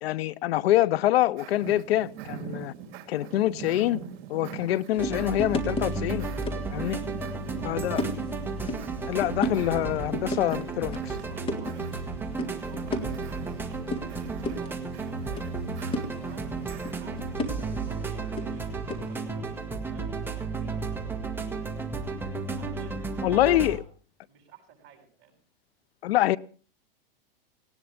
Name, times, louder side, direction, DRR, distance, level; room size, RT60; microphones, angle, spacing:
voice 1, 0.0-2.7 3.1-4.0 4.3-6.3 6.7-7.0 7.6-8.0 9.1-11.2 23.2-23.8 26.0-26.4, left 14 dB, 85° left, 0.7 m, -25 dB
sound 1, 1.4-17.3, right 9 dB, 55° right, 3.2 m, -44 dB
sound 2, 4.9-19.2, left 2 dB, 15° left, 1.8 m, -36 dB
sound 3, 5.0-23.8, right 4 dB, 5° right, 1.5 m, -33 dB
voice 2, 6.7-8.0 11.3-13.7 14.0-16.6 17.0-21.0 22.6-23.9 24.3-25.4, right 7 dB, 40° right, 7.6 m, -54 dB
18.5 x 18.0 x 3.4 m
supercardioid pair, 145°, 30 cm